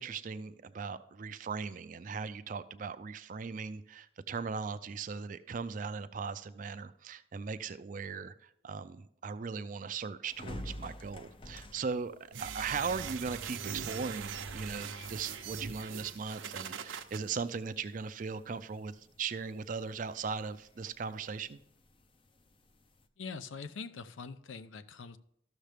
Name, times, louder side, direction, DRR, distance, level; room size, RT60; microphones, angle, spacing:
voice 1, 0.0-21.6, right 5 dB, 40° right, 11 dB, 0.4 m, -38 dB
sound 1, 10.2-23.1, left 1 dB, 25° left, 0.5 m, -52 dB
sound 2, 12.3-17.2, right 6 dB, 80° right, 0.7 m, -41 dB
voice 2, 23.2-25.2, left 5 dB, 80° left, 12 dB, 0.6 m, -43 dB
13.0 x 6.5 x 3.4 m, 0.73 s
head